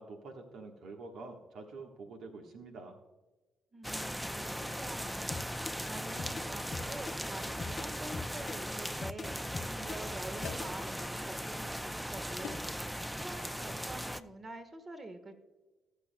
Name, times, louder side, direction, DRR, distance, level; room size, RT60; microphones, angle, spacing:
voice 1, 0.0-3.0, right 3 dB, 75° right, 3 dB, 1.3 m, -47 dB
voice 2, 3.7-5.4 5.9-12.7 13.2-15.4, right 2 dB, 35° right, 8 dB, 1.3 m, -47 dB
sound 1, 3.8-14.2, equal, 5° right, 0.5 m, -38 dB
sound 2, 5.3-10.9, left 4 dB, 35° left, 0.6 m, -42 dB
sound 3, 10.4-10.9 12.4-12.8, left 8 dB, 85° left, 0.8 m, -46 dB
19.0 x 6.9 x 2.2 m, 1.2 s
supercardioid pair, 65°, 0 cm